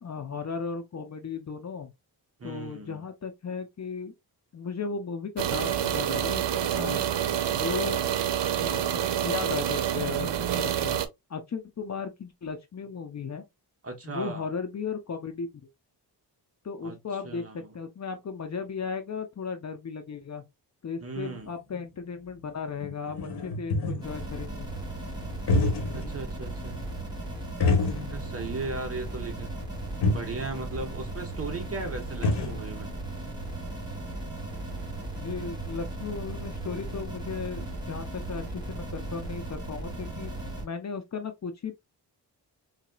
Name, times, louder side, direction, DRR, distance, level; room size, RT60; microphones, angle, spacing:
voice 1, 0.0-1.9 2.4-4.1 4.5-7.0 7.5-8.0 8.6-11.0 11.3-13.5 14.0-15.5 16.6-20.4 20.8-24.7 35.1-40.3 40.6-41.7, left 5 dB, 40° left, 0.7 m, -36 dB
voice 2, 2.4-3.0 13.8-14.4 16.8-17.0 17.2-17.7 21.0-21.5 25.9-26.9 28.1-29.5 30.1-32.9, right 3 dB, 35° right, 0.9 m, -37 dB
sound 1, 5.4-11.1, right 10 dB, 80° right, 0.6 m, -27 dB
sound 2, 21.2-21.3 21.7-21.8 22.5-22.6 22.8-24.3 25.3-26.1 26.5-26.6 27.6-28.4 28.7-28.8 29.7-29.8 30.0-30.4 31.7-31.8 32.0-32.6, left 3 dB, 65° left, 1.0 m, -27 dB
sound 3, 24.0-40.6, right 2 dB, 10° right, 1.7 m, -36 dB
4.0 x 2.7 x 2.2 m
wide cardioid pair, 130°, 42 cm